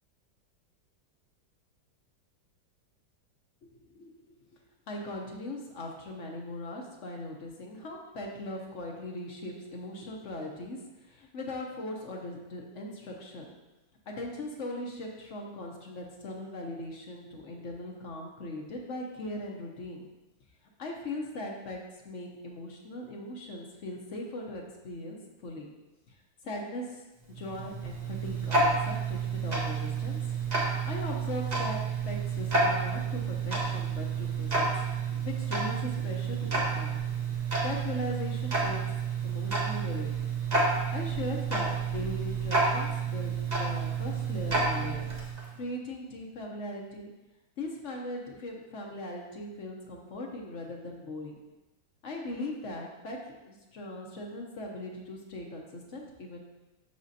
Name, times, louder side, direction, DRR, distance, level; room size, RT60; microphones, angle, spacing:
voice 1, 3.6-4.1 4.9-13.5 14.1-20.1 20.8-21.8 22.0-25.7 26.1-26.2 26.4-27.0 27.3-30.2 30.8-37.0 37.6-38.9 39.2-40.1 40.9-45.1 45.5-47.1 47.6-51.4 52.0-53.2 53.4-56.4, left 1 dB, 55° left, 0 dB, 0.9 m, -39 dB
Tick-tock, 27.2-45.5, right 4 dB, 30° right, 0.8 m, -30 dB
6.6 x 6.0 x 2.7 m, 1.1 s
omnidirectional pair, 2.1 m